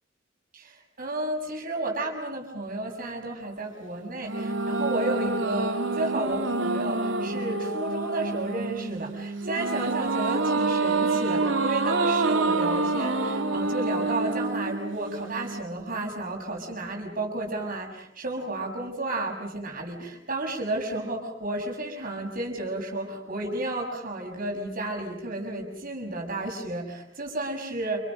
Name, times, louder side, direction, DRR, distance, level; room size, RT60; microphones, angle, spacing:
voice 1, 0.5-28.0, right 2 dB, 50° right, 1 dB, 6.4 m, -32 dB
sound 1, 4.2-15.6, right 3 dB, 85° right, 2.7 m, -27 dB
29.5 x 28.5 x 6.4 m, 0.70 s
head